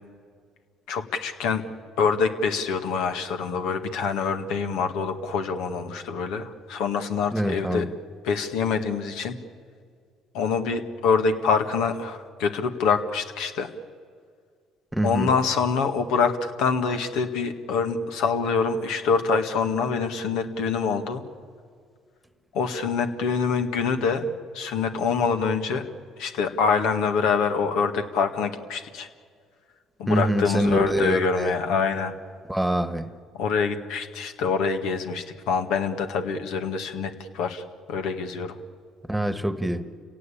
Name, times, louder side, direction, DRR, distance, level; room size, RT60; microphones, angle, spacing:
voice 1, 0.9-1.6 2.0-7.9 8.2-9.4 10.3-13.7 15.0-21.2 22.5-24.2 24.5-25.9 26.2-29.1 30.0-32.1 33.3-37.6 37.9-38.6, left 5 dB, 80° left, 7 dB, 1.8 m, -25 dB
voice 2, 7.3-7.9 14.9-15.3 30.1-31.6 32.5-33.2 39.0-39.9, right 1 dB, 5° right, 11 dB, 1.5 m, -25 dB
29.0 x 17.5 x 8.7 m, 2.1 s
supercardioid pair, 75°, 0 cm